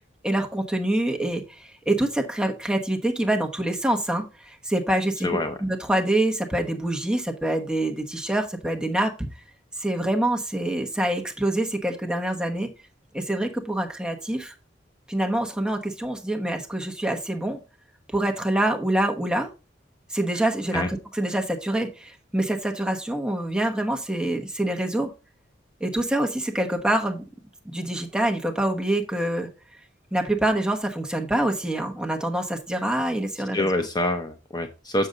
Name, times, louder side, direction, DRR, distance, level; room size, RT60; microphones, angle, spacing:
voice 1, 0.2-5.3 5.6-9.3 9.8-12.7 13.1-14.5 15.1-17.6 18.1-19.5 20.1-25.1 25.8-27.2 27.6-29.5 30.1-33.7, right 1 dB, 5° right, 2 dB, 1.1 m, -26 dB
voice 2, 5.2-5.6 20.7-20.9 33.5-35.1, left 1 dB, 20° left, 6 dB, 0.7 m, -26 dB
7.0 x 6.6 x 3.8 m, 0.31 s
head